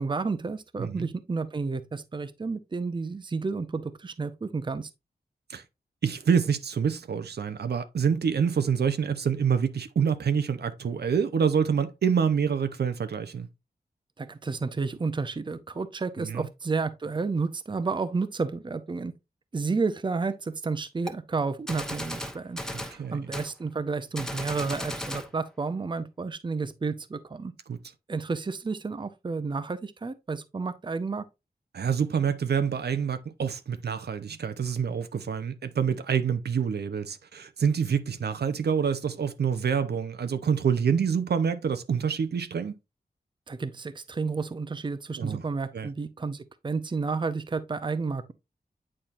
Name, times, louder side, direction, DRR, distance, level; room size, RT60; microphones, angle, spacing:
voice 1, 0.0-4.9 14.2-19.1 19.5-27.5 28.1-31.2 43.5-48.3, right 4 dB, 30° right, 0.6 m, -31 dB
voice 2, 6.0-13.5 16.2-16.5 22.7-23.3 27.7-27.8 31.7-42.8 45.2-45.4 45.7-45.9, right 7 dB, 80° right, 0.7 m, -27 dB
Gunshot gunfire, 21.1-21.2 21.7-23.0 23.3-23.5 24.1-25.3, equal, 5° left, 0.9 m, -35 dB
8.7 x 4.3 x 2.5 m
wide cardioid pair, 110°, 17 cm